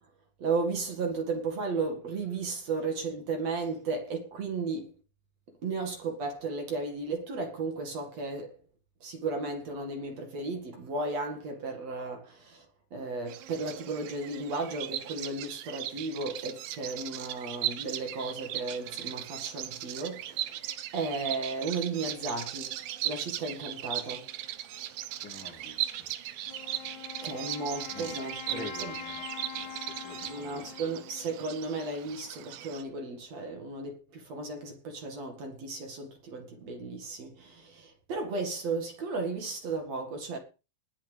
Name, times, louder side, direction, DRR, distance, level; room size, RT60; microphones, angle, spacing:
voice 1, 0.4-4.9 5.6-8.6 9.0-12.7 12.9-20.6 20.9-22.8 23.0-24.3 27.2-29.0 30.3-40.4, right 3 dB, 50° right, 3.0 m, -34 dB
Bird vocalization bird call bird song, 13.3-32.8, right 13 dB, 80° right, 2.6 m, -38 dB
voice 2, 25.2-26.1 27.9-29.2 29.5-30.9, left 2 dB, 40° left, 2.7 m, -47 dB
Wind instrument woodwind instrument, 26.5-32.2, left 9 dB, 65° left, 3.3 m, -44 dB
20.0 x 10.0 x 3.4 m
omnidirectional pair, 4.1 m